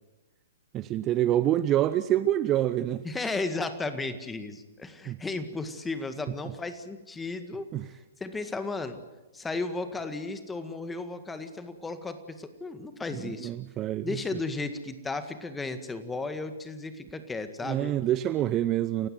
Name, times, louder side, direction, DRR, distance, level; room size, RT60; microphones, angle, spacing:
voice 1, 0.7-3.0 5.1-5.2 7.7-7.9 13.1-14.1 17.6-19.1, right 12 dB, 25° right, 14 dB, 0.7 m, -26 dB
voice 2, 3.0-7.7 8.2-9.0 9.3-13.5 14.0-17.9, left 3 dB, 10° left, 9 dB, 1.8 m, -34 dB
29.0 x 15.5 x 7.9 m, 1.1 s
figure-of-eight pair, 120°, 0 cm